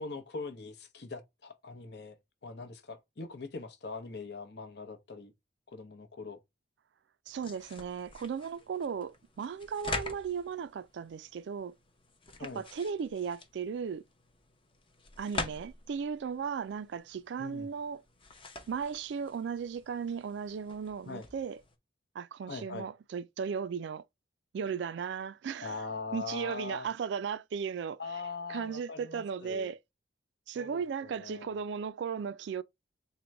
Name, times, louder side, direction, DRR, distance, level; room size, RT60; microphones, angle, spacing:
voice 1, 0.0-2.2 2.4-5.3 5.7-6.4 12.4-12.6 17.4-17.7 21.1-21.3 22.5-22.9 25.6-26.9 28.0-29.7 30.5-31.5, left 4 dB, 60° left, 0.7 m, -42 dB
sound 1, 7.3-21.8, left 2 dB, 30° left, 0.7 m, -45 dB
voice 2, 7.3-11.7 12.4-14.0 15.2-18.0 18.7-21.6 22.1-24.0 24.5-25.8 26.1-28.0 28.5-29.8 30.5-32.6, right 6 dB, 65° right, 0.3 m, -36 dB
3.8 x 2.1 x 4.4 m
head